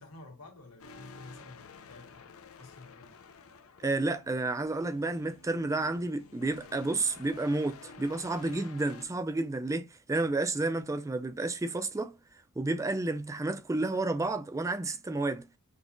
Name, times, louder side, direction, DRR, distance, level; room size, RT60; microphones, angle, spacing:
voice 1, 0.0-3.2, left 2 dB, 90° left, 1.7 m, -51 dB
sound 1, 0.8-9.0, left 3 dB, 65° left, 0.6 m, -51 dB
voice 2, 3.8-12.1 12.6-15.5, right 2 dB, 15° right, 0.3 m, -31 dB
6.2 x 2.8 x 2.5 m
head